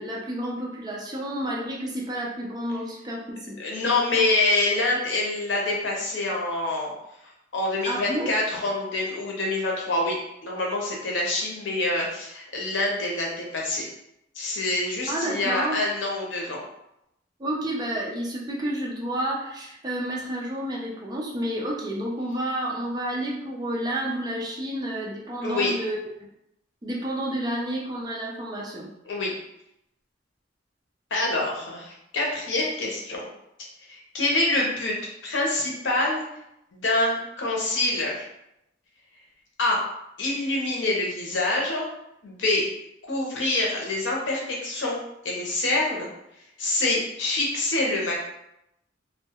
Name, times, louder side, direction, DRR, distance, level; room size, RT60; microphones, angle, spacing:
voice 1, 0.0-3.6 7.8-8.3 15.1-15.8 17.4-26.0 26.8-28.9, right 1 dB, 20° right, -3 dB, 0.4 m, -30 dB
voice 2, 3.6-6.9 7.5-13.8 14.4-16.6 25.4-25.7 29.1-29.3 31.1-33.3 33.9-35.0 35.2-36.2 36.7-38.3 39.6-39.8 40.2-41.9 42.2-42.6 43.1-45.0 45.2-46.1 46.6-48.2, left 2 dB, 85° left, -2 dB, 0.7 m, -26 dB
2.2 x 2.1 x 2.8 m, 0.82 s
head